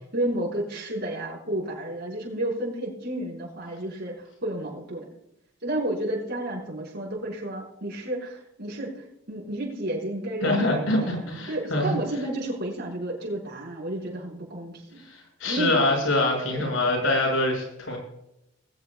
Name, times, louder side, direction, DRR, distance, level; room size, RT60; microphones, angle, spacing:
voice 1, 0.1-5.1 5.6-11.1 11.5-15.0 15.4-15.8 16.5-16.7, right 1 dB, 55° right, -2 dB, 5.8 m, -31 dB
voice 2, 10.4-12.0 15.1-18.0, left 2 dB, 75° left, 1 dB, 7.0 m, -24 dB
20.5 x 16.5 x 2.5 m, 0.83 s
head